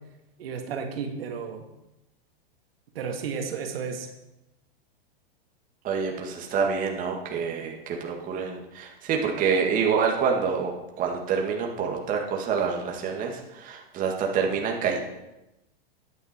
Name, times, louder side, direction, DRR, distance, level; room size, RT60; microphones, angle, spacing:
voice 1, 0.4-1.7 3.0-4.1, right 6 dB, 75° right, 4 dB, 1.9 m, -33 dB
voice 2, 5.8-15.0, right 6 dB, 25° right, 1 dB, 1.8 m, -27 dB
13.0 x 9.7 x 4.4 m, 0.92 s
hypercardioid pair, 145°, 30 cm